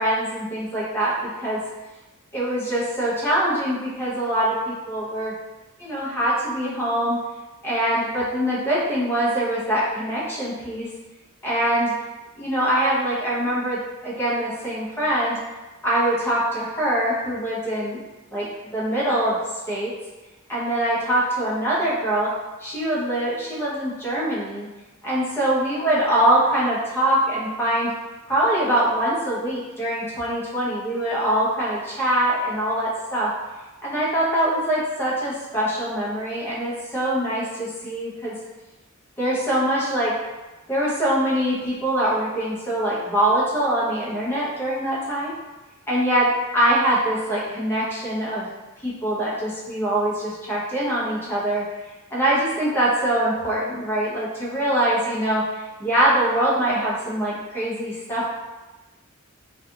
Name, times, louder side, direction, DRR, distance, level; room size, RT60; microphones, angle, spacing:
voice 1, 0.0-1.6 2.3-5.4 5.8-7.2 7.6-10.9 11.4-11.9 12.4-15.4 15.8-18.0 18.3-19.4 19.7-19.9 20.5-22.3 22.6-24.7 25.0-27.9 28.3-33.3 33.8-38.4 39.2-40.1 40.7-45.3 45.9-48.5 48.8-51.6 52.1-58.3, right 1 dB, 10° left, -8 dB, 0.7 m, -23 dB
2.7 x 2.4 x 2.3 m, 1.1 s
head